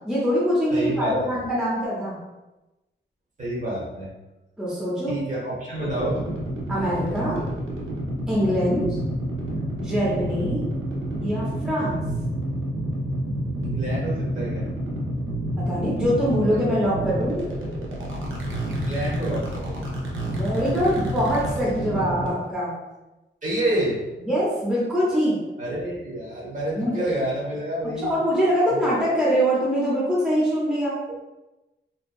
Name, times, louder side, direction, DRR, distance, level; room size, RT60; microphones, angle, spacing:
voice 1, 0.1-2.2 4.6-5.2 6.7-7.4 8.3-9.0 9.8-10.7 11.2-12.0 15.6-17.5 20.2-22.8 24.2-25.4 26.7-26.9 28.0-31.0, equal, 5° right, -8 dB, 0.5 m, -23 dB
voice 2, 0.7-1.4 3.4-4.1 5.1-6.3 9.6-9.7 13.6-14.7 16.2-16.4 18.7-19.9 23.4-24.0 25.6-28.2 28.7-28.8, right 1 dB, 40° right, -6 dB, 0.8 m, -28 dB
sound 1, 5.8-22.3, right 1 dB, 85° right, 0.6 m, -29 dB
2.6 x 2.2 x 2.2 m, 1.0 s
wide cardioid pair, 170°, 20 cm